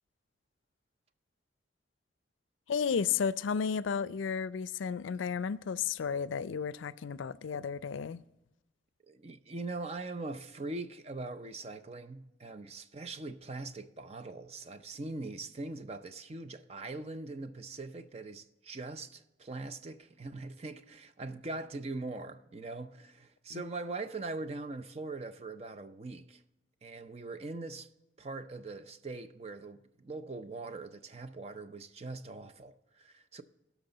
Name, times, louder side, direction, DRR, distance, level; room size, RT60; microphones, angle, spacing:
voice 1, 2.7-8.2 23.5-23.6, left 6 dB, 85° left, 0.4 m, -33 dB
voice 2, 9.1-26.4 26.8-27.9 28.2-33.4, right 3 dB, 35° right, 0.5 m, -42 dB
17.0 x 6.0 x 3.9 m
head